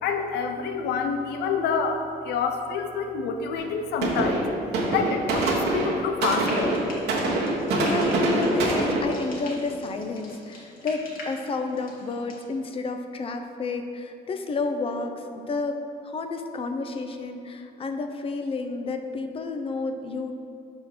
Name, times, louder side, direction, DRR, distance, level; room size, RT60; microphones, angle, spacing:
voice 1, 0.0-4.4 4.9-6.8, left 5 dB, 75° left, 5 dB, 0.7 m, -27 dB
sound 1, 3.6-3.7 4.0-9.0, right 2 dB, 75° right, 1.4 m, -24 dB
Frying (food), 6.4-12.4, left 2 dB, 55° left, 1.6 m, -44 dB
voice 2, 7.7-15.8 16.0-20.3, left 3 dB, 35° left, 6 dB, 0.6 m, -30 dB
5.4 x 4.4 x 5.8 m, 2.5 s
cardioid pair, 110°, 17 cm